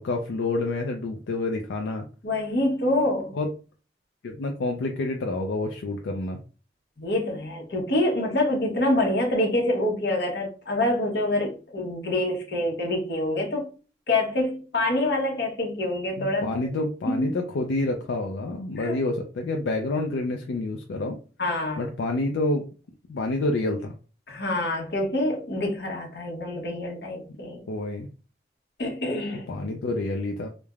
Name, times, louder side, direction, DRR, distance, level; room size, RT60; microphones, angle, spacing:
voice 1, 0.0-2.0 3.3-3.5 4.2-6.4 16.1-21.2 21.8-22.7 23.1-23.9 27.7-28.1 29.5-30.5, left 2 dB, 90° left, 0.4 m, -28 dB
voice 2, 2.2-3.3 7.0-13.7 14.1-16.5 17.1-17.3 18.8-19.0 21.4-21.8 24.3-27.7 28.8-29.5, left 1 dB, 70° left, 0.9 m, -26 dB
3.2 x 2.0 x 2.3 m
head